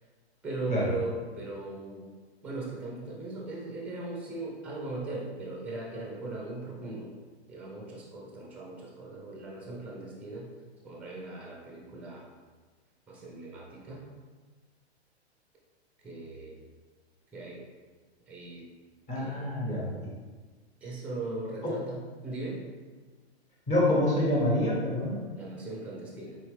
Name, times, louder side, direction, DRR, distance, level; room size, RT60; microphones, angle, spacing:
voice 1, 0.4-2.1 2.4-7.1 7.5-10.5 10.8-12.3 13.1-14.0 16.0-16.6 17.3-17.6 18.3-18.7 19.1-19.5 20.8-22.0 22.2-22.6 25.4-26.4, right 2 dB, 5° right, -3 dB, 0.7 m, -38 dB
voice 2, 19.1-20.1 21.6-21.7 23.7-25.2, left 1 dB, 20° left, -6 dB, 1.4 m, -27 dB
4.0 x 2.8 x 3.2 m, 1.4 s
hypercardioid pair, 120°, 32 cm